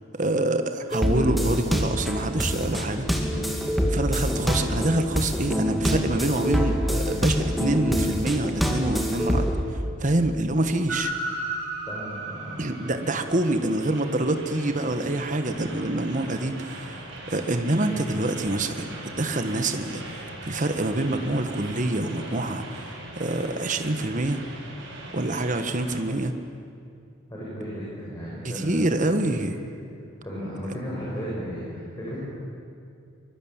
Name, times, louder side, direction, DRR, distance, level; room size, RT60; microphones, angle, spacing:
voice 1, 0.2-3.4 3.9-11.1 12.6-22.9 23.2-24.4 25.1-26.4 28.4-29.6, right 2 dB, 35° right, 8 dB, 1.4 m, -26 dB
sound 1, 0.9-9.6, equal, ahead, 2.5 m, -26 dB
Train, 10.9-26.0, right 2 dB, 60° right, 6.9 m, -38 dB
voice 2, 11.9-12.6 27.3-29.0 29.3-29.6 30.2-32.2, equal, 15° left, -7 dB, 6.4 m, -35 dB
24.0 x 22.5 x 8.9 m, 2.5 s
head